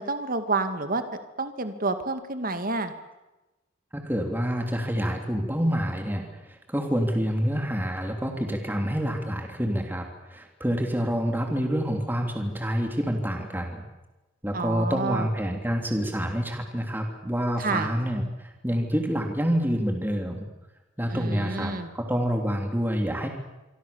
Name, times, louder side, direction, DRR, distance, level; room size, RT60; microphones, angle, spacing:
voice 1, 0.0-2.9 14.5-15.3 17.6-17.9 21.1-21.9, right 3 dB, 45° right, 8 dB, 2.1 m, -29 dB
voice 2, 3.9-13.8 14.4-20.5 21.0-23.3, equal, 10° right, 3 dB, 3.3 m, -27 dB
26.0 x 25.5 x 7.2 m, 1.0 s
head